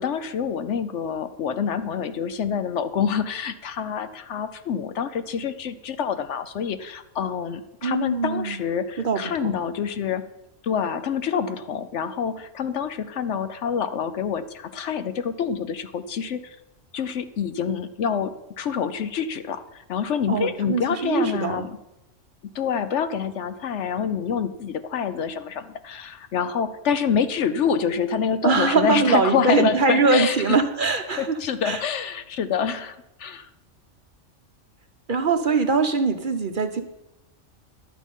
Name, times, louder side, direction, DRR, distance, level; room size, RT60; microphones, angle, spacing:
voice 1, 0.0-10.2 10.6-16.6 16.9-21.8 22.5-30.6 31.2-33.5, left 7 dB, 70° left, 11 dB, 1.0 m, -27 dB
voice 2, 7.8-8.6 9.0-9.6 20.3-21.7 28.4-31.8 35.1-36.8, right 4 dB, 50° right, 7 dB, 0.8 m, -22 dB
11.5 x 8.6 x 5.4 m, 0.91 s
omnidirectional pair, 1.3 m